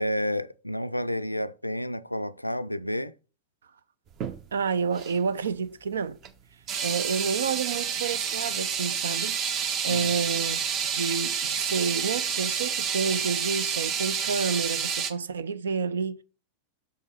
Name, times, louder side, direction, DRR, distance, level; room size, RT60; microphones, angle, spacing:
voice 1, 0.0-3.1 9.9-10.2, equal, 90° left, 0.4 m, -30 dB
sound 1, 4.1-4.4 4.9-5.1 6.2-6.3 6.7-15.1, right 7 dB, 35° right, 0.8 m, -29 dB
voice 2, 4.5-6.2 6.8-9.4 9.8-10.6 10.9-16.2, right 5 dB, 70° right, 0.5 m, -29 dB
6.6 x 5.4 x 4.2 m
figure-of-eight pair, 90°, 0 cm